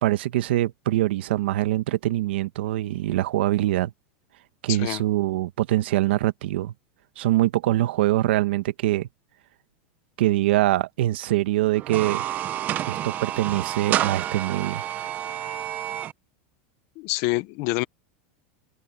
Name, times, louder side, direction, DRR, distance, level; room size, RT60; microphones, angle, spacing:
voice 1, 0.0-3.9 4.6-6.7 7.2-9.1 10.2-12.2 12.9-14.8, right 15 dB, 85° right, 1.3 m, -23 dB
voice 2, 4.7-5.0 17.0-17.8, left 23 dB, 50° left, 0.8 m, -26 dB
sound 1, 11.8-16.1, right 12 dB, 30° right, 0.6 m, -29 dB
supercardioid pair, 155°, 6 cm